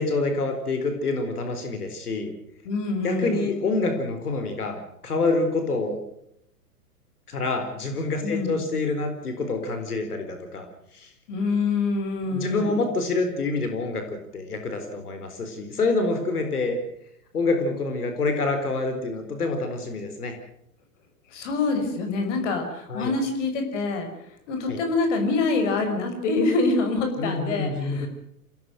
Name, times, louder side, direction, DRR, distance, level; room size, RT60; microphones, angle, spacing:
voice 1, 0.0-2.3 3.0-6.0 7.3-10.7 10.9-11.1 12.3-16.8 17.3-20.3 22.9-23.1 24.7-24.8 27.2-28.1, left 3 dB, 75° left, 6 dB, 4.1 m, -27 dB
voice 2, 2.6-3.5 8.2-8.6 11.3-12.8 21.3-24.1 24.5-28.1, left 3 dB, 50° left, 5 dB, 5.8 m, -25 dB
27.5 x 17.5 x 6.3 m, 0.76 s
figure-of-eight pair, 105°, 46 cm